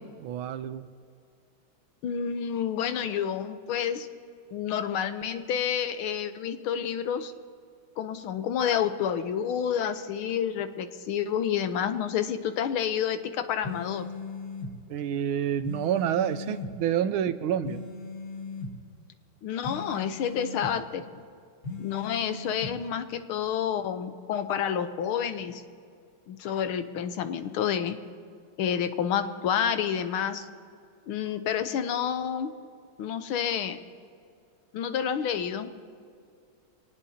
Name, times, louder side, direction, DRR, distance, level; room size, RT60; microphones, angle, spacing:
voice 1, 0.2-0.9 14.9-17.8, right 9 dB, 80° right, 12 dB, 1.5 m, -28 dB
voice 2, 2.0-4.1 4.5-7.3 8.0-14.1 19.4-21.0 21.8-25.6 26.3-28.0 28.6-30.5 31.1-32.5 33.0-33.8 34.7-35.7, left 8 dB, 85° left, 9 dB, 1.7 m, -29 dB
sound 1, 13.6-14.7 15.6-16.7 17.6-18.7 19.6-20.7 21.6-22.7, left 3 dB, 35° left, 1.8 m, -38 dB
24.5 x 18.5 x 2.8 m, 2.3 s
omnidirectional pair, 2.3 m